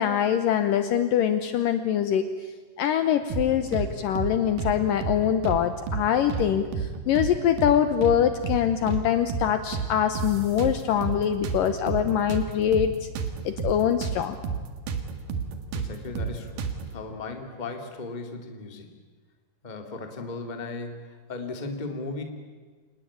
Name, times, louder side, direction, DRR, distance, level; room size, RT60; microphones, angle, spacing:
voice 1, 0.0-2.3 2.8-13.1 13.5-14.4, left 9 dB, 70° left, 9 dB, 2.3 m, -24 dB
sound 1, 3.3-3.9 4.2-4.3 4.6-5.6 5.9-6.0 6.3-7.3 7.6-7.8 8.0-9.0 9.3-9.5 9.7-11.2 11.4-14.2 14.4-14.6 14.9-16.9, right 6 dB, 65° right, 3.3 m, -30 dB
voice 2, 15.7-18.9 19.6-22.2, left 3 dB, 15° left, 5 dB, 1.6 m, -36 dB
26.5 x 19.5 x 8.7 m, 1.4 s
omnidirectional pair, 4.6 m